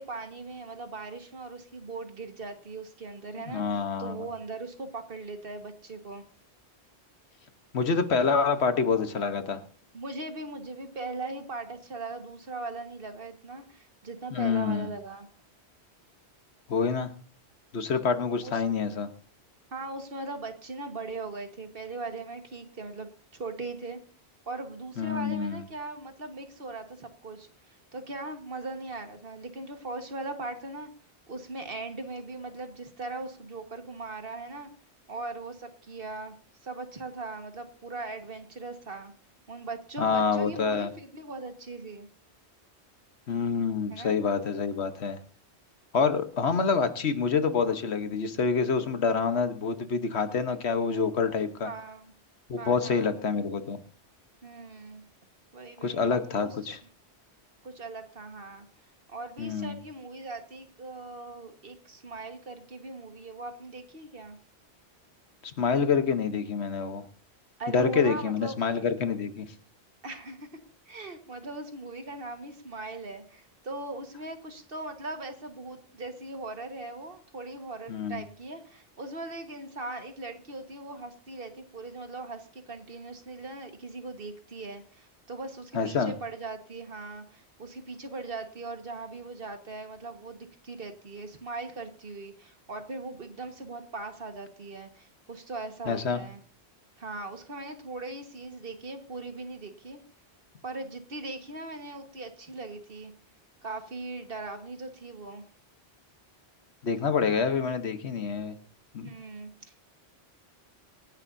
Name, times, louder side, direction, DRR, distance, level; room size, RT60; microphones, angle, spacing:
voice 1, 0.0-6.2 9.9-15.3 18.4-18.6 19.7-24.0 24.5-30.9 31.3-34.7 35.1-36.4 36.6-39.1 39.5-42.1 43.9-44.2 51.6-52.1 52.6-53.2 54.4-55.0 55.5-56.1 56.4-56.8 57.6-64.4 67.6-68.6 70.0-70.5 70.9-96.4 97.0-100.0 100.6-103.1 103.6-105.4 109.0-109.9, right 3 dB, 55° right, 6 dB, 1.7 m, -39 dB
voice 2, 3.5-4.2 7.7-9.6 14.3-14.9 16.7-17.1 17.7-19.1 25.0-25.6 40.0-40.9 43.3-45.2 45.9-51.7 52.5-53.8 55.8-56.8 59.4-59.8 65.4-67.1 67.7-69.5 77.9-78.2 85.7-86.1 95.9-96.2 106.8-108.6 108.9-109.1, left 5 dB, 75° left, 9 dB, 1.4 m, -27 dB
26.0 x 10.5 x 2.7 m, 0.41 s
omnidirectional pair, 1.1 m